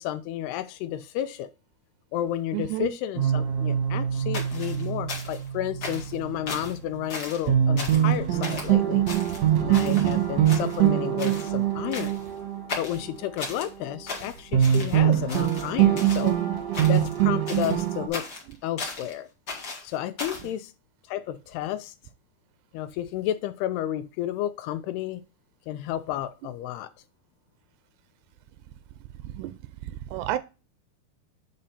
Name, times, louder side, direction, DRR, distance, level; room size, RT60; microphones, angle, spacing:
voice 1, 0.0-1.5 2.1-9.0 9.6-12.2 12.8-16.4 16.8-18.2 18.6-19.3 19.8-20.7 21.1-21.9 22.7-25.2 25.7-26.9, left 12 dB, 80° left, 2.6 m, -32 dB
voice 2, 2.5-2.9 9.9-10.1 29.4-29.5 30.1-30.4, right 14 dB, 90° right, 2.7 m, -29 dB
sound 1, 3.2-7.0 7.5-14.3 14.5-18.1, right 10 dB, 65° right, 1.8 m, -24 dB
sound 2, 4.3-5.5 5.8-6.2 6.5-6.8 7.1-7.5 7.8-8.1 8.4-8.7 9.1-10.1 10.4-10.9 11.2-11.5 11.9-12.3 12.7-13.7 14.1-15.0 15.3-16.3 16.7-17.2 17.5-19.1 19.5-20.5, left 3 dB, 45° left, 1.3 m, -37 dB
9.0 x 4.3 x 4.1 m
omnidirectional pair, 4.7 m